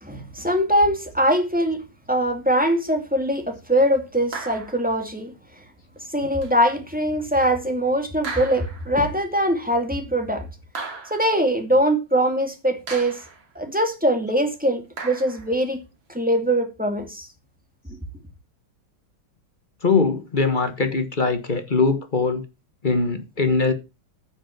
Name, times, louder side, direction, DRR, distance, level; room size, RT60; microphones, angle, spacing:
voice 1, 0.0-1.8 2.1-5.3 6.1-10.5 11.1-13.2 13.6-15.8 16.1-17.3, equal, 5° right, 2.1 m, -22 dB
sound 1, 4.3-4.9 6.4-6.6 8.2-9.0 10.7-11.4 12.9-13.4 15.0-15.5, right 4 dB, 65° right, 3.2 m, -35 dB
voice 2, 19.8-22.4 22.8-23.7, left 4 dB, 25° left, 1.2 m, -21 dB
9.7 x 6.3 x 7.2 m
omnidirectional pair, 2.3 m